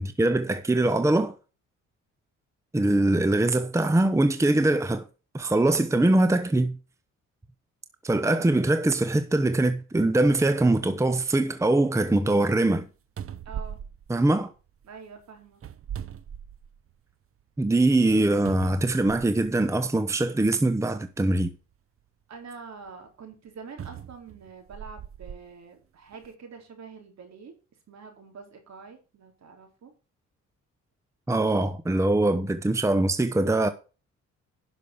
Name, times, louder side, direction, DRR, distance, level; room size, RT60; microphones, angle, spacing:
voice 1, 0.0-1.4 2.7-5.1 5.3-6.8 8.0-12.9 14.1-14.5 17.6-21.5 31.3-33.7, right 2 dB, 10° right, 0.9 m, -22 dB
sound 1, 12.8-12.9 13.2-14.9 15.5-17.0 17.4-17.5 18.4-19.6 20.5-20.6 23.8-25.4 26.1-26.3, right 8 dB, 45° right, 0.9 m, -39 dB
voice 2, 13.5-13.8 14.8-15.6 22.3-27.5 27.9-29.9, right 5 dB, 60° right, 3.9 m, -45 dB
11.0 x 6.2 x 5.1 m
cardioid pair, 90°, 30 cm